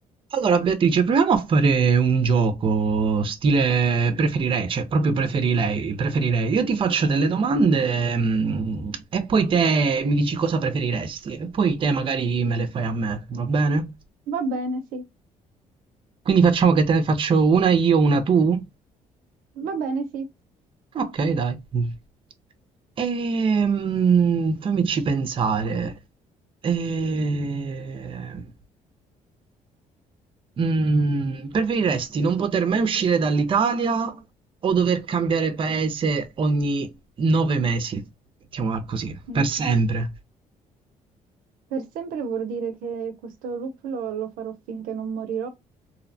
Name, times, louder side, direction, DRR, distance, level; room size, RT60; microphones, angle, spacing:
voice 1, 0.3-13.9 16.3-18.6 20.9-21.9 23.0-26.0 26.6-28.4 30.6-34.1 34.6-36.9 37.2-38.0 38.5-40.1, right 5 dB, 40° right, 0.5 m, -22 dB
voice 2, 14.3-15.0 19.6-20.3 39.3-39.4 41.7-45.5, right 4 dB, 80° right, 0.5 m, -30 dB
2.7 x 2.0 x 2.6 m
cardioid pair, 95°, 14 cm